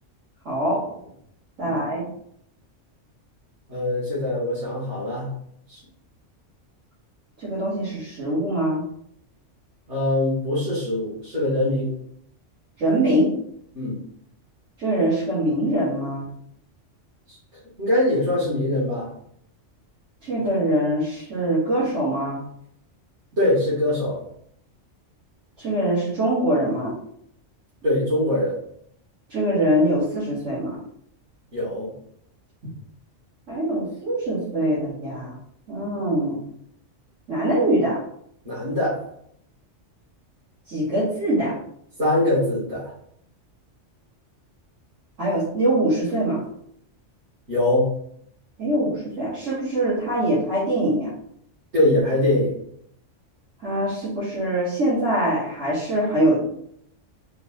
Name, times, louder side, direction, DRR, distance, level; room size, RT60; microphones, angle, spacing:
voice 1, 0.4-0.9 1.6-2.1 7.4-8.8 12.8-13.3 14.8-16.2 20.2-22.4 25.6-26.9 29.3-30.8 33.5-35.4 35.7-36.4 37.3-38.0 40.7-41.6 45.2-46.4 48.6-51.1 53.6-56.4, right 1 dB, 80° right, -12 dB, 2.2 m, -23 dB
voice 2, 3.7-5.3 5.7-5.8 9.9-11.9 13.7-14.0 17.3-17.4 17.8-19.1 23.4-24.2 27.8-28.6 31.5-31.9 38.4-39.1 42.0-42.9 47.5-47.9 51.7-52.5, left 1 dB, 65° right, -10 dB, 2.1 m, -22 dB
4.5 x 2.4 x 4.2 m, 0.68 s
omnidirectional pair, 1.3 m